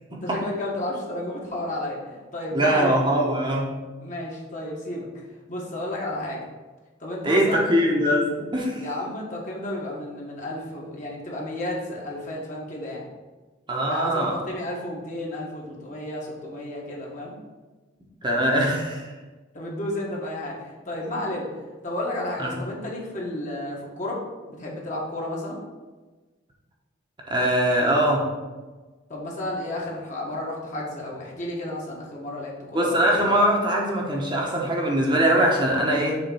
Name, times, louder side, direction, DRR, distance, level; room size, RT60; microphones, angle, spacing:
voice 1, 0.1-3.0 4.0-5.2 5.5-6.4 7.0-7.6 8.8-13.0 13.9-17.3 19.5-21.5 21.8-24.2 24.5-25.6 29.1-33.0, left 1 dB, 40° left, -3 dB, 1.5 m, -32 dB
voice 2, 2.5-3.7 7.2-8.9 13.7-14.4 18.2-19.1 22.4-22.6 27.3-28.2 32.7-36.2, right 1 dB, 25° right, -2 dB, 1.0 m, -22 dB
6.7 x 3.7 x 5.5 m, 1.3 s
head